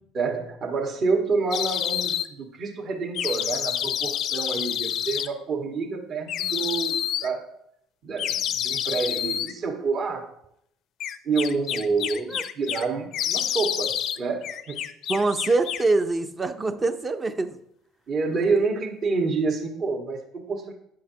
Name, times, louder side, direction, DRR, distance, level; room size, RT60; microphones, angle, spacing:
voice 1, 0.1-7.5 8.0-10.3 11.2-14.8 18.1-20.7, right 4 dB, 50° right, 2 dB, 1.6 m, -28 dB
sound 1, 1.5-2.3 3.1-5.3 6.3-7.3 8.2-9.5 11.0-12.8 13.1-14.2 14.4-15.9, left 10 dB, 60° left, 0.5 m, -28 dB
voice 2, 15.1-17.6 18.4-18.5, right 3 dB, 25° right, 8 dB, 0.6 m, -24 dB
9.2 x 5.6 x 2.8 m, 0.75 s
supercardioid pair, 80°, 0 cm